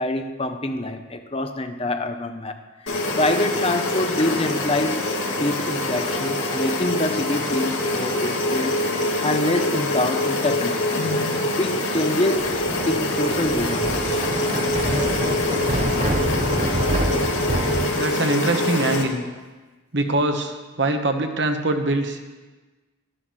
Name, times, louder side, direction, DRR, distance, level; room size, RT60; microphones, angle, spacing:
voice 1, 0.0-2.6 2.8-5.0 5.4-11.0 11.5-12.5 12.9-14.0, left 1 dB, 30° left, 7 dB, 0.8 m, -26 dB
sound 1, 2.9-19.0, left 2 dB, 75° left, 2.3 m, -24 dB
Thunder, 12.4-17.9, right 1 dB, 30° right, 0.8 m, -26 dB
voice 2, 17.9-19.2 19.9-22.2, right 2 dB, 60° right, 5 dB, 1.4 m, -23 dB
11.5 x 11.0 x 6.3 m, 1.3 s
head